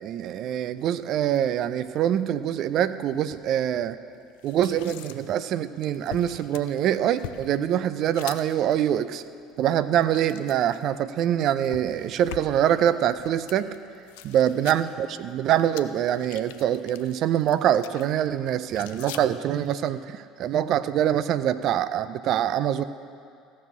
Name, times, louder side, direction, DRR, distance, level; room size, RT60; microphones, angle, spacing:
voice 1, 0.0-4.0 4.4-9.2 9.6-13.7 14.2-22.8, right 10 dB, 55° right, 13 dB, 0.5 m, -24 dB
Blood Gush and Squelch, 0.8-19.8, left 12 dB, 70° left, 0.5 m, -46 dB
14.5 x 6.3 x 7.5 m, 2.3 s
hypercardioid pair, 65°, 0 cm